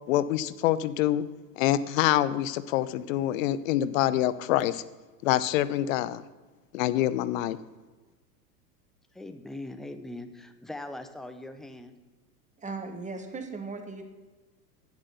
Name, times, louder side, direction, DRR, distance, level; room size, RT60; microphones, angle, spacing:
voice 1, 0.1-1.2 1.6-4.8 5.2-6.2 6.7-7.6, left 13 dB, 55° left, 15 dB, 0.8 m, -26 dB
voice 2, 9.1-11.9, left 1 dB, ahead, 8 dB, 0.5 m, -41 dB
voice 3, 12.6-14.0, right 3 dB, 15° right, 5 dB, 1.4 m, -37 dB
10.5 x 7.5 x 6.8 m, 1.2 s
hypercardioid pair, 100°, 48 cm